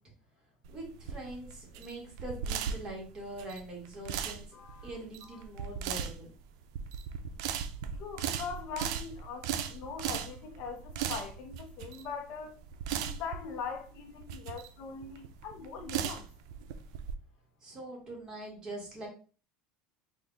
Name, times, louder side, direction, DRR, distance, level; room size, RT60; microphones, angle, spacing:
sound 1, 0.6-17.1, right 8 dB, 85° right, 0.4 m, -38 dB
voice 1, 0.7-4.5 4.8-6.3 17.6-19.1, right 1 dB, 25° right, 1.6 m, -43 dB
voice 2, 4.5-4.9 8.0-12.6 13.0-16.3, left 6 dB, 60° left, 0.8 m, -41 dB
3.4 x 2.4 x 3.8 m
cardioid pair, 135°, 3 cm